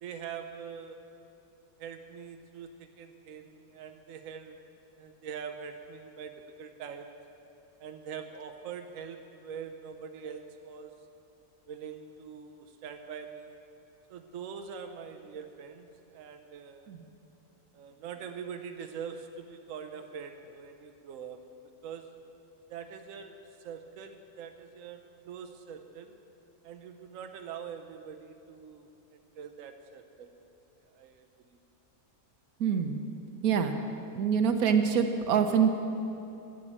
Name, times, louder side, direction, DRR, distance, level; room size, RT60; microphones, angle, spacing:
voice 1, 0.0-1.0 1.8-4.6 5.0-6.3 6.6-7.1 7.8-10.9 11.7-13.5 14.1-16.9 17.7-21.4 21.8-22.2 22.7-26.2 26.6-30.3 30.8-31.6, right 7 dB, 70° right, 6 dB, 1.1 m, -43 dB
voice 2, 32.6-33.0 33.4-33.7 34.1-35.7, right 7 dB, 85° right, 7 dB, 1.3 m, -25 dB
12.0 x 9.0 x 7.4 m, 2.8 s
omnidirectional pair, 1.5 m